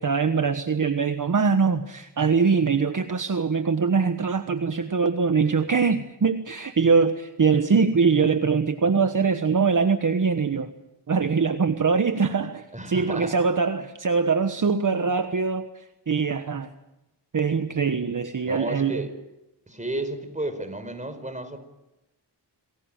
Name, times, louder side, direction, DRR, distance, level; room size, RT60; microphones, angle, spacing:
voice 1, 0.0-10.7 11.1-16.7 17.3-19.0, right 5 dB, 45° right, 8 dB, 1.3 m, -23 dB
voice 2, 12.7-13.4 18.4-19.1 19.7-21.6, right 1 dB, 15° right, 8 dB, 4.8 m, -32 dB
28.0 x 20.5 x 8.9 m, 0.97 s
wide cardioid pair, 95°, 42 cm